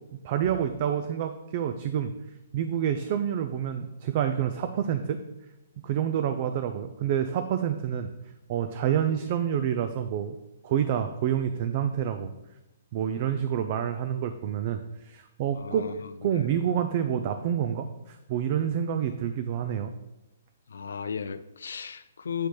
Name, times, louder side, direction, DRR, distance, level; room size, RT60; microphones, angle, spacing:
voice 1, 0.2-2.1 2.5-5.2 5.8-8.1 8.5-10.4 10.6-12.3 12.9-15.9 16.2-19.9, right 9 dB, 35° right, 8 dB, 0.4 m, -28 dB
voice 2, 15.5-16.5 20.7-22.5, left 7 dB, 85° left, 11 dB, 0.3 m, -35 dB
8.2 x 4.2 x 3.2 m, 0.95 s
hypercardioid pair, 160°, 0 cm